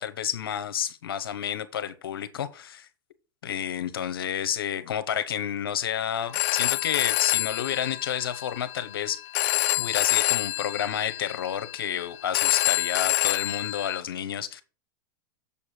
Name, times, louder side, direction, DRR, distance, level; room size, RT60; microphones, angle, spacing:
voice 1, 0.0-2.9 3.4-9.2 9.8-14.6, left 9 dB, 85° left, 1.1 m, -30 dB
Telephone, 6.2-14.0, left 19 dB, 55° left, 0.7 m, -27 dB
7.2 x 7.1 x 4.5 m
hypercardioid pair, 115°, 12 cm